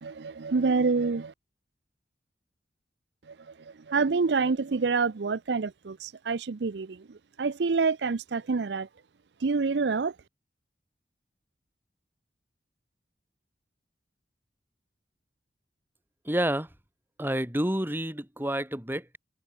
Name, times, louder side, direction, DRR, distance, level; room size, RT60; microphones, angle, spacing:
voice 1, 0.0-1.3 3.9-7.0 7.4-8.9 9.4-10.1, right 4 dB, 70° right, 0.6 m, -27 dB
voice 2, 16.3-16.7 17.2-19.2, right 1 dB, 10° right, 5.0 m, -29 dB
head